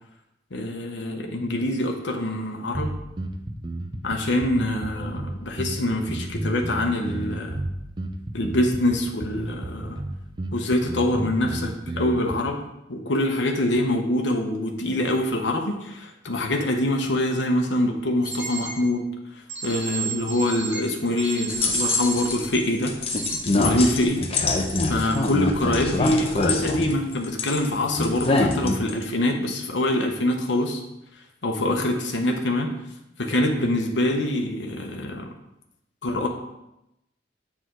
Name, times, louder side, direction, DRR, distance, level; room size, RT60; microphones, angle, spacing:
voice 1, 0.5-2.9 4.0-7.6 8.3-10.0 10.5-12.6 12.9-19.1 19.3-23.0 23.5-24.2 24.9-30.8 31.4-32.7 33.2-35.3 36.0-36.3, left 1 dB, 75° left, 2 dB, 0.9 m, -24 dB
sound 1, 2.7-12.3, right 1 dB, 25° right, 0.6 m, -32 dB
sound 2, 18.2-18.7 19.5-22.6 23.1-23.4, right 6 dB, 65° right, 2.7 m, -32 dB
sound 3, 21.5-22.5 22.8-27.7 27.9-29.0, left 3 dB, 35° left, 0.7 m, -24 dB
7.8 x 4.9 x 3.7 m, 0.88 s
head